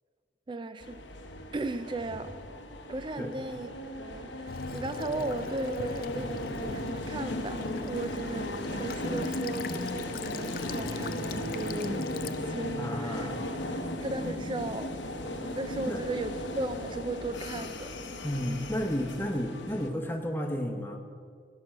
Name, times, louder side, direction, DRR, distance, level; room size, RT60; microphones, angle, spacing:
voice 1, 0.5-1.0 1.5-2.3 2.9-3.7 4.0-13.3 13.7-14.9 15.2-18.0, right 2 dB, 25° right, 11 dB, 0.3 m, -36 dB
sound 1, 0.8-19.9, left 1 dB, 85° left, 1.0 m, -36 dB
Child speech kid speaking / Bird vocalization bird call bird song / Stream, 4.5-12.5, left 5 dB, 50° left, 0.4 m, -43 dB
voice 2, 12.8-13.4 15.9-16.0 18.2-21.0, equal, 10° left, 2 dB, 0.9 m, -32 dB
12.0 x 6.0 x 7.6 m, 2.1 s
head